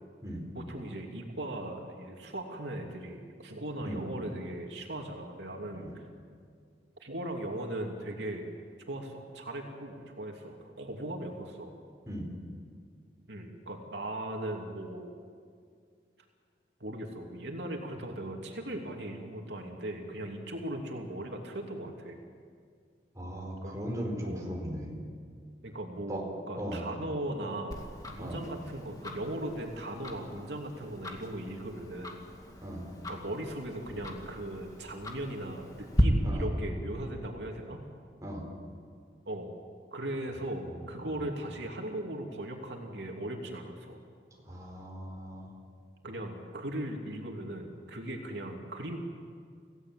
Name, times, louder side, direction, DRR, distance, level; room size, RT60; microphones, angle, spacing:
voice 1, 0.5-6.0 7.0-8.6 8.9-11.7 13.3-15.1 16.8-22.2 23.6-23.8 24.2-24.4 25.6-27.8 28.1-32.2 33.1-37.8 39.3-39.5 39.9-44.0 46.0-49.0, right 1 dB, 85° right, 1 dB, 2.8 m, -38 dB
voice 2, 23.1-25.0 26.1-26.2 26.6-26.8 28.2-28.4 32.6-32.9 36.2-36.5 38.2-38.4 40.6-40.8 41.2-41.3 44.5-45.5, equal, 20° right, -1 dB, 4.6 m, -38 dB
Tick-tock, 27.7-36.0, equal, 20° left, 2.1 m, -37 dB
27.0 x 17.0 x 7.7 m, 2.2 s
head